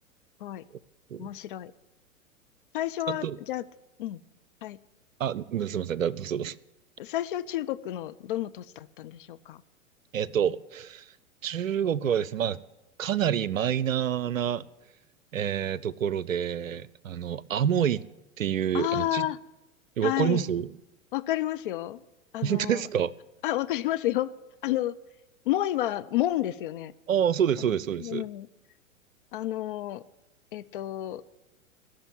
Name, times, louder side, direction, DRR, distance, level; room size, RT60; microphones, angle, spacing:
voice 1, 1.2-1.7 2.7-3.6 4.0-4.2 4.6-4.8 7.0-9.6 18.7-19.4 20.0-20.5 21.1-22.0 22.3-22.8 23.4-24.3 24.6-25.0 25.5-26.9 28.0-28.5 29.3-30.0 30.5-31.2, left 14 dB, 40° left, 0.6 m, -30 dB
voice 2, 3.1-3.4 5.2-6.6 10.1-11.0 11.4-12.6 13.0-14.6 15.3-18.0 18.4-19.2 20.0-20.7 22.4-23.1 27.1-28.2, right 9 dB, 70° right, 0.6 m, -27 dB
17.5 x 6.4 x 9.5 m
figure-of-eight pair, 100°, 41 cm